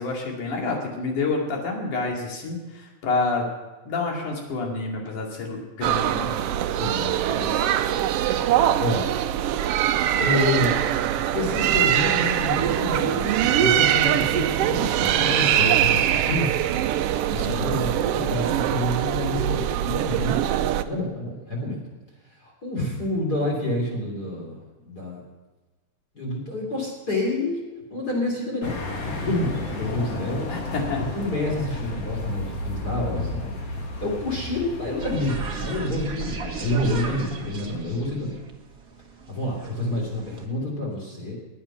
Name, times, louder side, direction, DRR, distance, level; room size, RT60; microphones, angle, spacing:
voice 1, 0.0-3.4 3.9-6.4 17.4-17.7 30.5-31.0, left 3 dB, 90° left, 0 dB, 3.9 m, -28 dB
sound 1, 5.8-20.8, right 11 dB, 85° right, 1.3 m, -23 dB
voice 2, 6.8-7.7 8.8-9.1 10.1-10.9 11.3-16.5 17.2-21.8 22.4-24.6 24.8-25.2 26.1-27.6 27.9-28.8 29.2-30.5 31.1-38.4 39.3-41.3, left 1 dB, 35° left, -2 dB, 3.3 m, -28 dB
sound 2, 28.6-35.8, left 2 dB, 55° left, 3.1 m, -32 dB
sound 3, 35.0-40.5, right 5 dB, 40° right, 1.4 m, -36 dB
20.0 x 8.6 x 5.8 m, 1.2 s
omnidirectional pair, 3.4 m